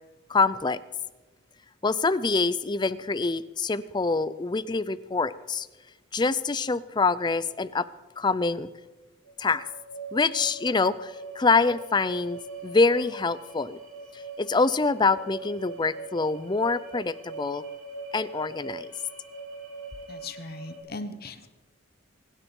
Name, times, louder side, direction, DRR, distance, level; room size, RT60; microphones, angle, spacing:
voice 1, 0.3-0.8 1.8-5.7 6.1-7.9 8.2-8.7 9.4-9.6 10.1-13.8 14.1-17.6 18.1-18.9, left 4 dB, 20° left, 16 dB, 0.4 m, -25 dB
sound 1, 9.2-20.8, right 3 dB, 85° right, 3.4 m, -42 dB
voice 2, 20.1-21.5, left 2 dB, 45° left, 10 dB, 1.2 m, -38 dB
23.5 x 9.9 x 5.4 m, 1.2 s
head